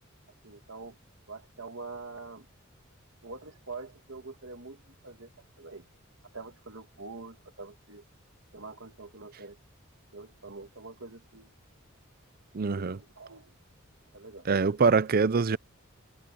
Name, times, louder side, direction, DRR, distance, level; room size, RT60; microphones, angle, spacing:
voice 1, 0.4-1.0 1.3-2.5 3.2-5.3 5.6-5.9 6.3-8.0 8.5-9.6 10.1-11.5 12.6-13.5 14.1-14.5, right 3 dB, 65° right, 2.3 m, -45 dB
voice 2, 12.5-13.0 14.5-15.6, right 4 dB, 45° right, 0.5 m, -24 dB
head